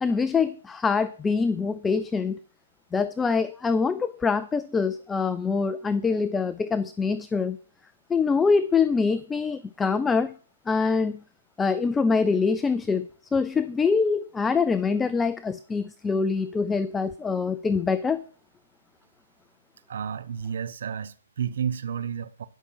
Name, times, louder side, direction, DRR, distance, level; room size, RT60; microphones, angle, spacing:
voice 1, 0.0-2.4 2.9-7.6 8.1-10.3 10.7-11.2 11.6-18.2, left 5 dB, 10° left, 0.4 m, -24 dB
voice 2, 19.9-22.5, right 7 dB, 65° right, 1.1 m, -31 dB
11.0 x 5.9 x 7.4 m
hypercardioid pair, 150°, 0 cm